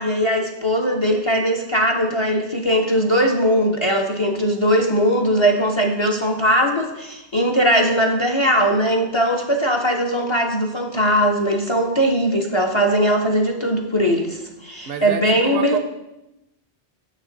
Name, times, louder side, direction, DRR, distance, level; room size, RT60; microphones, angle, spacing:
voice 1, 0.0-15.8, equal, 35° left, 2 dB, 0.5 m, -20 dB
voice 2, 14.9-15.8, right 7 dB, 65° right, 7 dB, 0.7 m, -29 dB
6.8 x 6.3 x 3.8 m, 0.93 s
omnidirectional pair, 1.1 m